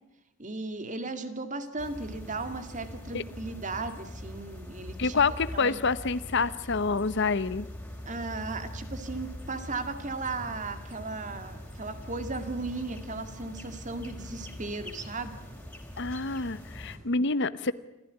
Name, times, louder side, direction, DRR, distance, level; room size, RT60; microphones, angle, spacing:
voice 1, 0.4-5.3 5.5-5.8 8.1-15.3, right 3 dB, 35° right, 9 dB, 2.3 m, -36 dB
sound 1, 1.8-17.0, left 1 dB, 5° left, 4.3 m, -42 dB
voice 2, 5.0-7.7 16.0-17.7, left 4 dB, 60° left, 15 dB, 0.9 m, -27 dB
27.0 x 15.5 x 10.0 m, 0.94 s
head